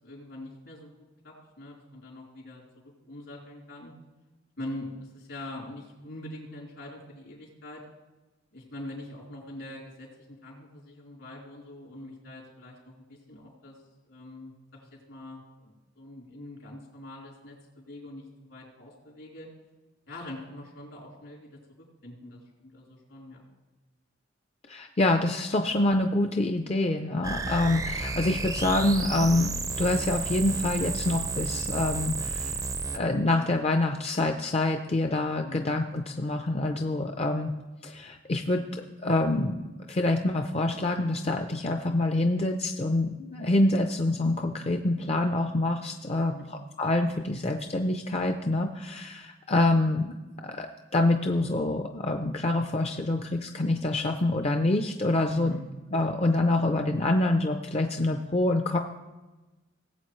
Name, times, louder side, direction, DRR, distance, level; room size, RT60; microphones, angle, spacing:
voice 1, 0.0-3.9 4.6-7.8 8.5-13.8 14.1-19.5 20.1-21.6 22.0-23.4 35.4-35.8 46.1-46.5 55.3-55.8, left 1 dB, 75° left, -4 dB, 3.9 m, -44 dB
voice 2, 24.7-32.6 32.9-37.5 37.8-38.6 39.0-46.3 46.8-50.1 50.4-50.7 50.9-55.6 55.9-58.8, left 2 dB, 35° left, 5 dB, 0.5 m, -26 dB
sound 1, 27.2-33.0, right 3 dB, 20° right, 0.5 m, -32 dB
18.5 x 8.0 x 3.1 m, 1.1 s
head